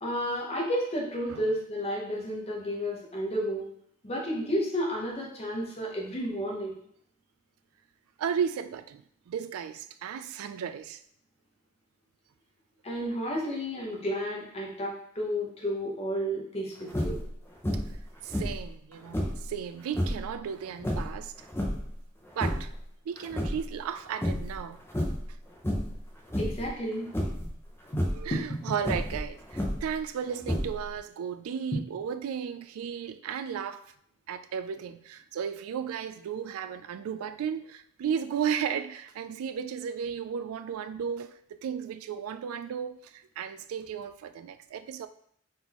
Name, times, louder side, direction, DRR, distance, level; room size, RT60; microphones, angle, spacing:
voice 1, 0.0-3.6 4.0-6.7 12.8-17.2 26.4-27.1 28.3-28.4, equal, 30° left, 0.9 m, -31 dB
voice 2, 8.2-11.0 17.7-17.8 18.2-21.5 22.4-22.7 23.1-24.8 28.1-33.8 34.3-45.1, right 7 dB, 90° right, 0.3 m, -34 dB
sound 1, 16.9-17.3 17.6-18.0 18.3-19.5 19.9-20.3 20.8-21.9 22.3-22.8 23.2-23.9 24.2-24.6 24.9-25.3 25.6-26.0 26.3-26.7 27.1-27.5 27.9-28.2 28.8-30.0 30.4-31.0, equal, 10° left, 0.6 m, -30 dB
4.0 x 3.7 x 2.9 m
head